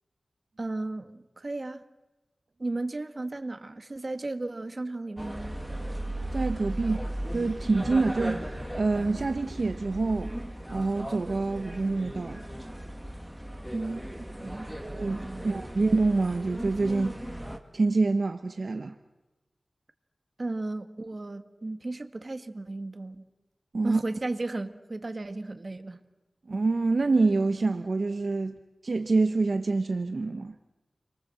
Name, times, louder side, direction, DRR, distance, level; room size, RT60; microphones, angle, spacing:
voice 1, 0.6-1.8 2.6-5.6 13.7-14.7 15.1-15.6 20.4-23.3 23.8-26.0, right 2 dB, 40° right, 1.6 m, -35 dB
sound 1, 5.2-17.6, right 1 dB, 5° right, 2.4 m, -37 dB
voice 2, 6.3-10.3 10.7-12.4 14.8-17.3 17.7-18.9 23.7-24.0 26.5-28.6 28.8-30.5, right 3 dB, 60° right, 0.9 m, -26 dB
29.5 x 24.0 x 7.7 m
wide cardioid pair, 90°, 0 cm